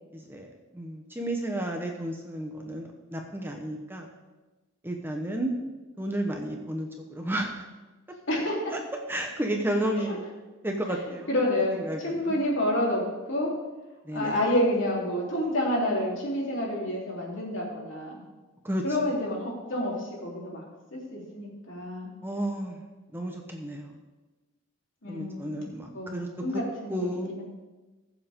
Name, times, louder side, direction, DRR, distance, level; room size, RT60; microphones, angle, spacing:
voice 1, 0.1-4.1 4.8-5.5 6.0-7.6 8.7-8.8 9.1-10.3 10.6-11.3 11.7-12.4 14.0-14.4 18.6-18.8 22.2-22.8 23.1-24.0 25.1-26.3 26.5-26.6 26.9-27.3, right 1 dB, 10° right, 2 dB, 1.0 m, -32 dB
voice 2, 8.3-8.7 10.0-10.2 11.3-13.0 13.3-13.5 14.1-18.2 18.8-20.6 20.9-22.1 25.0-25.6 25.9-27.4, left 1 dB, 65° left, -4 dB, 3.5 m, -29 dB
20.0 x 7.3 x 3.7 m, 1.2 s
head